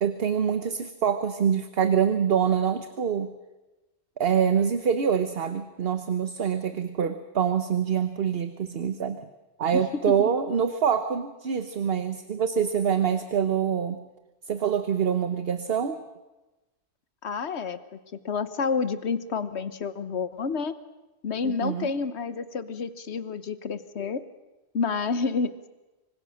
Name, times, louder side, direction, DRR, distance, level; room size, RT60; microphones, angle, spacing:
voice 1, 0.0-3.3 4.2-9.2 9.6-14.0 14.5-16.0 21.4-21.9, right 7 dB, 65° right, 10 dB, 1.2 m, -25 dB
voice 2, 17.2-17.8 18.2-20.7 21.2-24.2 24.7-25.5, left 5 dB, 90° left, 13 dB, 1.3 m, -29 dB
25.5 x 25.0 x 6.4 m, 1.1 s
omnidirectional pair, 1.1 m